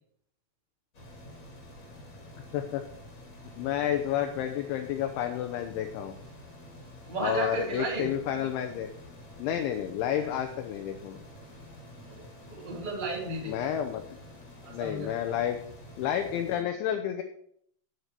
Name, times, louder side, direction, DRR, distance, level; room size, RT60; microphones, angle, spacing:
sound 1, 0.9-16.6, left 1 dB, 30° left, 2.5 m, -48 dB
voice 1, 3.6-6.2 7.2-8.9 9.4-11.2 13.5-14.0 14.7-15.6 16.0-17.2, left 10 dB, 80° left, 6 dB, 2.9 m, -30 dB
voice 2, 7.1-8.1 10.2-10.3 12.1-13.7 14.6-15.1, right 3 dB, 15° right, -2 dB, 1.7 m, -34 dB
9.7 x 7.7 x 6.7 m, 0.68 s
omnidirectional pair, 5.9 m